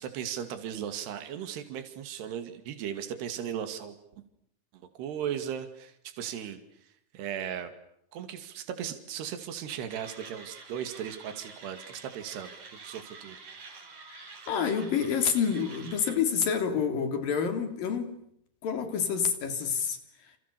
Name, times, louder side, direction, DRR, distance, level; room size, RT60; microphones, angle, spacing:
voice 1, 0.0-3.9 5.0-6.6 7.1-7.7 8.1-13.4, right 9 dB, 75° right, 9 dB, 4.4 m, -37 dB
Mechanisms, 9.9-16.2, right 4 dB, 50° right, 5.7 m, -48 dB
voice 2, 14.1-18.2 18.6-20.0 20.3-20.4, left 7 dB, 60° left, 8 dB, 4.7 m, -28 dB
29.5 x 29.0 x 6.9 m, 0.73 s
omnidirectional pair, 4.8 m